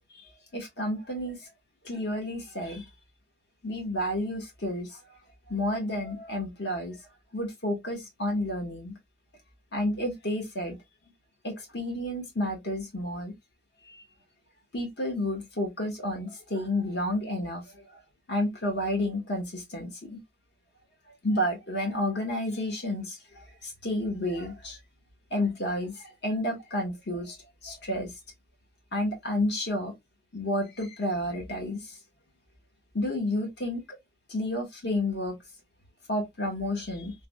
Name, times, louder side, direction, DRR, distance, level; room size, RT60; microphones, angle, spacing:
voice 1, 0.5-1.4 1.8-2.8 3.6-4.9 5.5-7.0 7.3-8.9 9.7-10.8 11.4-13.3 13.9-14.0 14.7-17.6 18.3-20.2 21.2-24.8 25.3-25.9 26.2-27.4 27.6-28.1 28.9-29.9 30.3-31.8 32.9-33.8 34.3-35.4 36.1-37.1, left 1 dB, 60° left, 1.1 m, -30 dB
3.3 x 2.1 x 2.2 m
head